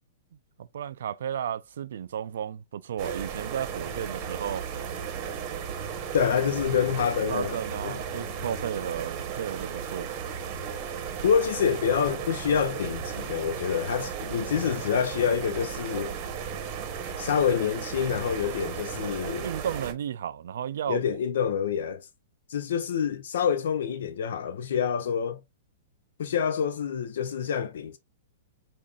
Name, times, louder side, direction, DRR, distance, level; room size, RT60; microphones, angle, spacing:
voice 1, 0.6-4.6 7.3-10.1 19.4-21.0, right 9 dB, 75° right, 0.3 m, -33 dB
sound 1, 3.0-19.9, right 7 dB, 30° right, 0.8 m, -35 dB
voice 2, 6.1-7.6 7.8-7.9 11.2-16.1 17.2-19.5 20.9-22.1 22.5-25.4 26.2-28.0, left 7 dB, 75° left, 0.5 m, -27 dB
5.1 x 2.5 x 2.3 m
hypercardioid pair, 150°, 0 cm